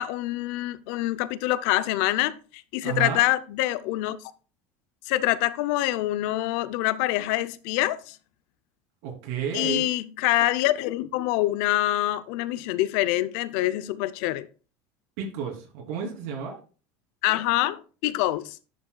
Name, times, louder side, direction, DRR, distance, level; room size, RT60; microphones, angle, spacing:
voice 1, 0.0-4.2 5.1-8.2 9.5-14.5 17.2-18.6, left 16 dB, 70° left, 0.5 m, -25 dB
voice 2, 2.8-3.2 9.0-9.9 15.2-16.5, right 6 dB, 70° right, 2.9 m, -31 dB
10.5 x 6.4 x 2.2 m
cardioid pair, 150°, 8 cm